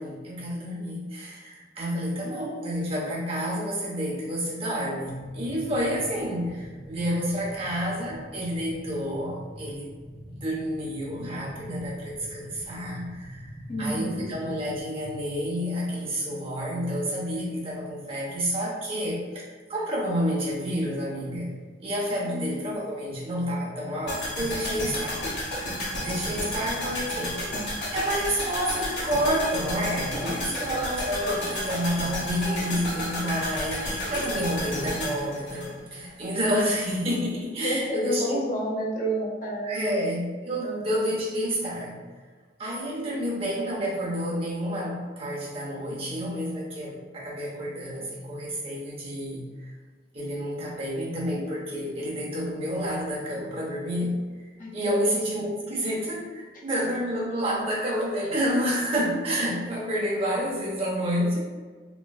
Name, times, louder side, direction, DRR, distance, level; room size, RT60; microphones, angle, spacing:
voice 1, 0.0-9.9 10.3-13.5 13.8-25.2 26.0-27.4 27.9-38.3 39.6-42.0 42.6-49.7 50.1-54.5 54.7-61.4, equal, 35° right, -5 dB, 0.9 m, -29 dB
sound 1, 5.0-15.4, equal, 75° right, 0.8 m, -44 dB
voice 2, 13.7-14.2 22.2-22.5 30.2-30.3 37.6-40.1 40.6-40.9 54.6-55.1, right 1 dB, 50° left, -4 dB, 0.8 m, -30 dB
sound 2, 24.1-36.3 36.5-36.6, left 1 dB, 70° left, 1.2 m, -31 dB
3.7 x 3.1 x 2.3 m, 1.4 s
head